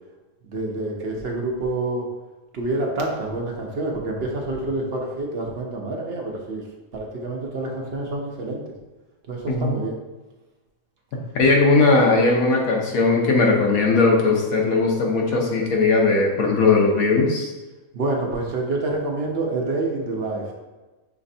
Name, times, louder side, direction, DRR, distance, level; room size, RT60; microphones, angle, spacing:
voice 1, 0.5-2.1 2.5-6.6 6.9-8.6 9.3-10.0 17.9-20.4, right 2 dB, 50° right, -1 dB, 0.8 m, -27 dB
voice 2, 9.5-9.8 11.4-17.5, left 3 dB, 70° left, -1 dB, 1.3 m, -18 dB
5.9 x 3.1 x 2.7 m, 1.1 s
omnidirectional pair, 1.6 m